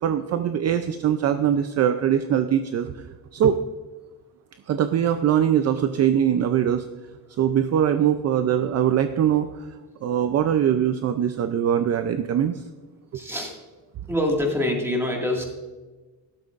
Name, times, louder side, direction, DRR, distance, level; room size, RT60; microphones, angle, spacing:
voice 1, 0.0-3.0 3.3-3.6 4.7-6.9 7.4-9.7 10.0-12.6 13.1-13.2, right 9 dB, 45° right, 9 dB, 0.5 m, -22 dB
voice 2, 13.1-13.5 14.1-15.4, left 1 dB, 5° right, 0 dB, 2.0 m, -25 dB
13.0 x 12.0 x 2.5 m, 1.3 s
cardioid pair, 170°, 37 cm